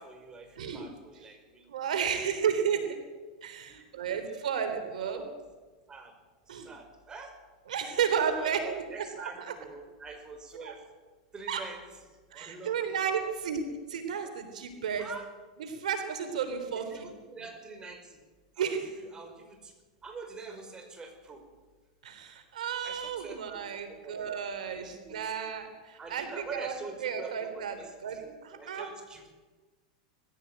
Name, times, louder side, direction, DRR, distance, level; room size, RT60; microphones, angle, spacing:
voice 1, 0.0-2.0 3.7-4.7 5.0-5.3 5.9-6.1 6.5-7.3 8.2-10.8 11.3-11.8 12.3-13.3 14.2-14.3 15.0-15.3 16.7-18.2 18.6-19.7 20.0-21.4 22.8-24.3 24.8-25.3 26.0-29.3, right 4 dB, 20° right, 5 dB, 5.2 m, -46 dB
voice 2, 1.7-2.9 3.4-5.2 6.5-6.7 7.7-8.8 9.2-9.3 10.7-10.8 11.5-11.6 12.3-13.6 13.9-15.1 15.7-17.1 18.6-18.8 22.0-26.7 27.0-27.8 28.0-28.2 28.4-28.9, right 7 dB, 85° right, 7 dB, 3.5 m, -32 dB
20.0 x 15.5 x 8.9 m, 1.3 s
hypercardioid pair, 120°, 4 cm